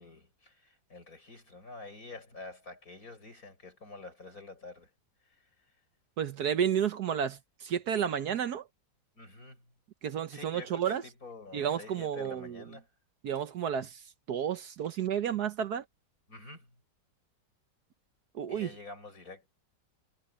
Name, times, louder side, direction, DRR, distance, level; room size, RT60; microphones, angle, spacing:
voice 1, 0.0-4.9 5.3-5.5 9.2-9.6 10.3-12.9 16.3-16.7 18.5-19.5, left 3 dB, 50° left, 7.0 m, -48 dB
voice 2, 6.2-8.7 10.0-11.0 11.5-12.6 13.2-14.0 14.3-15.8 18.3-18.7, right 8 dB, 65° right, 1.4 m, -31 dB
omnidirectional pair, 1.9 m